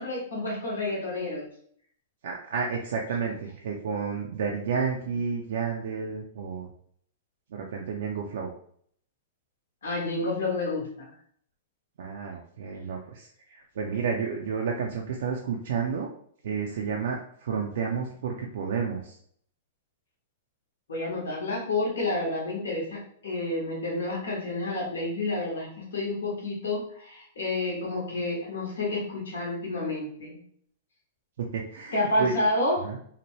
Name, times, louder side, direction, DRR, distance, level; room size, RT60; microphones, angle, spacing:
voice 1, 0.0-1.5 9.8-11.1 20.9-30.4 31.9-32.9, left 2 dB, 80° left, -3 dB, 1.0 m, -29 dB
voice 2, 2.2-6.7 7.5-8.5 12.0-16.1 16.4-19.2 31.4-32.3 32.8-33.0, right 6 dB, 70° right, 0 dB, 0.4 m, -31 dB
2.8 x 2.1 x 3.0 m, 0.62 s
hypercardioid pair, 115°, 0 cm